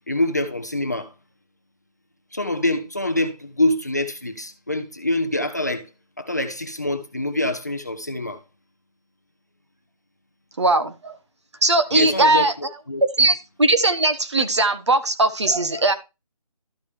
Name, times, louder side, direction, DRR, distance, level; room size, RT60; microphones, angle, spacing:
voice 1, 0.1-1.1 2.3-5.9 6.2-8.4 11.9-13.3, left 1 dB, 25° left, 0.6 m, -25 dB
voice 2, 10.6-11.2 11.6-12.5 13.2-15.9, right 2 dB, 45° right, 1.1 m, -19 dB
12.5 x 5.0 x 3.2 m
figure-of-eight pair, 175°, 20 cm